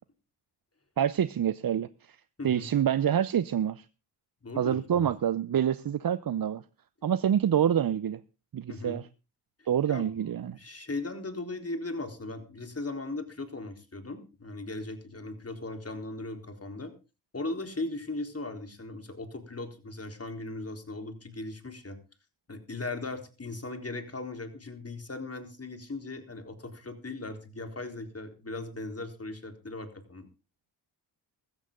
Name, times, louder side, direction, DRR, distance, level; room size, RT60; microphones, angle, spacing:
voice 1, 1.0-2.2 2.4-3.8 4.6-6.6 7.0-8.2 8.5-9.0 9.7-10.6, right 9 dB, 45° right, 16 dB, 0.8 m, -27 dB
voice 2, 4.4-5.1 8.7-9.0 9.9-10.1 10.5-16.9 17.3-22.0 22.5-30.3, left 2 dB, 30° left, 6 dB, 4.0 m, -38 dB
16.0 x 13.5 x 3.8 m, 0.31 s
supercardioid pair, 45°, 49 cm